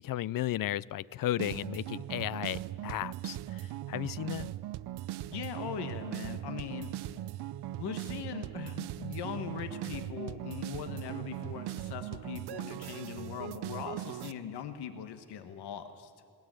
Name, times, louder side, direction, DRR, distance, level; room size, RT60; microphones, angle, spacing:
voice 1, 0.0-4.5, left 13 dB, 60° left, 21 dB, 0.5 m, -34 dB
sound 1, 1.4-14.3, right 14 dB, 80° right, 0.6 m, -39 dB
voice 2, 5.3-6.9 7.8-16.1, left 8 dB, 90° left, 8 dB, 1.4 m, -40 dB
19.5 x 19.0 x 9.1 m, 2.2 s
cardioid pair, 115°, 39 cm